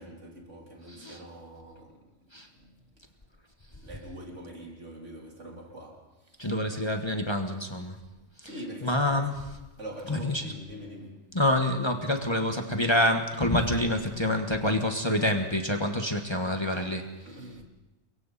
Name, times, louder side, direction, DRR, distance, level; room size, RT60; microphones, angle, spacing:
voice 1, 0.0-2.1 2.6-2.8 3.7-6.5 8.4-9.1 9.8-11.2 16.7-16.9 17.3-17.6, right 1 dB, 85° right, 3.8 m, -44 dB
voice 2, 0.9-1.2 2.3-2.5 6.4-8.0 8.4-8.5 8.8-9.4 10.1-10.5 11.3-17.0, left 1 dB, 25° left, 1.4 m, -27 dB
30.0 x 22.5 x 4.2 m
omnidirectional pair, 1.2 m